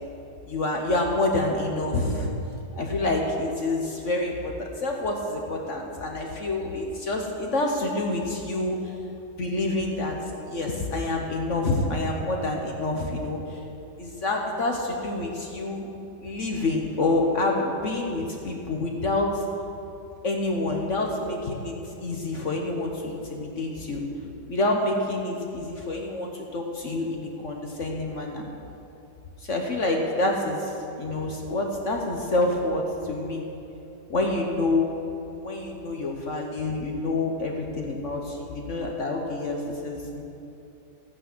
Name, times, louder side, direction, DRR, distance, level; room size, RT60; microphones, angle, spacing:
voice 1, 0.5-2.3 2.8-8.9 9.4-10.2 10.5-13.6 14.0-15.9 16.2-19.4 20.2-24.0 24.5-28.4 29.4-33.4 34.1-34.9 35.3-40.2, left 2 dB, 50° left, 1 dB, 1.4 m, -27 dB
14.5 x 9.3 x 6.2 m, 2.9 s
omnidirectional pair, 1.8 m